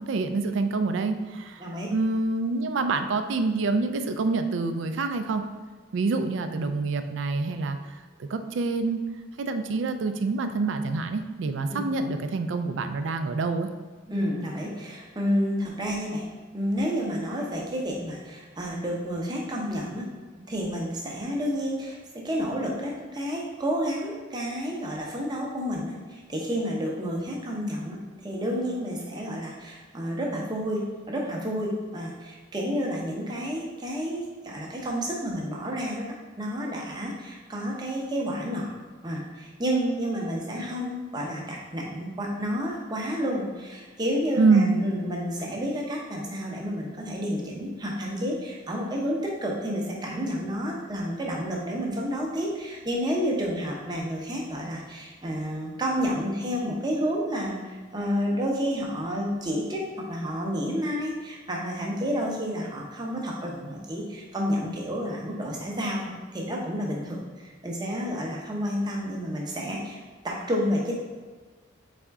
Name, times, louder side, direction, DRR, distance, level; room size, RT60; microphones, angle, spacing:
voice 1, 0.0-1.6 1.9-5.4 5.9-9.0 9.4-13.7 44.4-44.8, right 3 dB, 70° right, 8 dB, 0.4 m, -26 dB
voice 2, 1.6-1.9 11.7-11.8 14.1-20.1 20.5-38.7 39.0-70.0 70.2-70.9, equal, 20° right, -2 dB, 0.7 m, -30 dB
4.2 x 3.6 x 3.5 m, 1.4 s
head